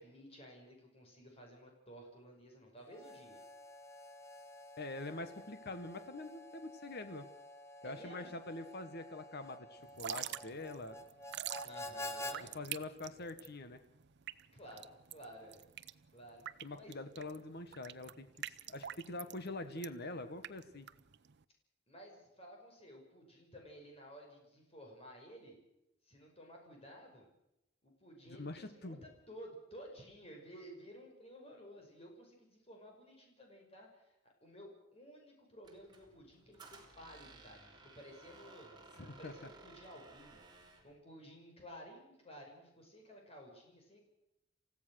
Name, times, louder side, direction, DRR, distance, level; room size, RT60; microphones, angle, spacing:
voice 1, 0.0-3.4 7.8-8.3 11.6-12.5 14.5-15.6 16.1-16.4 16.7-16.9 21.9-25.6 26.0-27.3 27.8-38.9 39.2-44.0, equal, 30° left, 1 dB, 5.7 m, -54 dB
Harmonica, 2.9-12.4, left 1 dB, 15° left, 1.3 m, -49 dB
voice 2, 4.8-7.3 7.8-11.0 12.5-13.8 16.6-20.9 28.3-29.0 39.0-39.3, left 2 dB, 55° left, 10 dB, 1.5 m, -45 dB
Drip / Trickle dribble, 9.8-21.4, right 11 dB, 60° right, 0.7 m, -46 dB
Squeak, 35.6-40.9, right 3 dB, 20° right, 3.6 m, -58 dB
28.5 x 15.5 x 6.5 m, 0.87 s
head